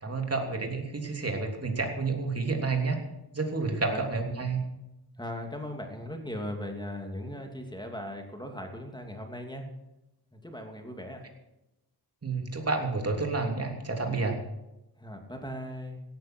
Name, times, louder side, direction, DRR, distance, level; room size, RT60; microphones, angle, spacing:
voice 1, 0.0-3.0 3.3-4.6 12.2-14.3, right 3 dB, 35° right, 2 dB, 3.2 m, -30 dB
voice 2, 5.2-9.7 10.3-11.2 15.0-16.0, left 1 dB, 10° left, 3 dB, 2.7 m, -38 dB
17.0 x 13.0 x 4.6 m, 0.96 s
wide cardioid pair, 100°, 40 cm